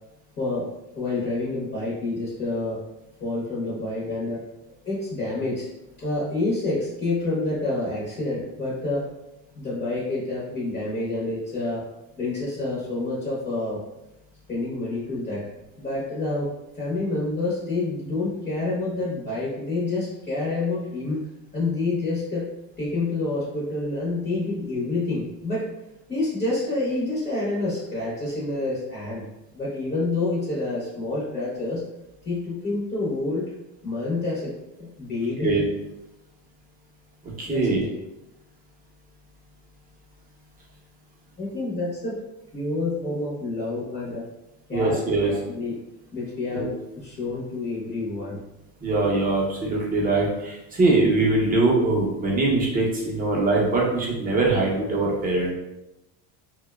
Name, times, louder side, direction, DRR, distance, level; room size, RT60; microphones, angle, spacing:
voice 1, 0.9-2.8 3.2-4.4 4.9-5.7 6.0-9.1 9.6-11.8 12.2-13.8 14.5-15.4 15.8-16.5 16.8-21.2 21.5-22.5 22.8-25.7 26.1-29.2 29.5-31.8 32.2-33.4 33.8-34.5 34.8-35.5 37.5-37.8 41.4-42.1 42.5-44.3 44.7-45.0 45.2-45.7 46.1-48.4, left 2 dB, 25° left, -7 dB, 0.7 m, -28 dB
voice 2, 37.4-37.8 44.7-45.3 46.5-46.7 48.8-55.5, right 2 dB, 20° right, -3 dB, 0.6 m, -22 dB
2.7 x 2.2 x 2.2 m, 0.93 s
cardioid pair, 125°, 44 cm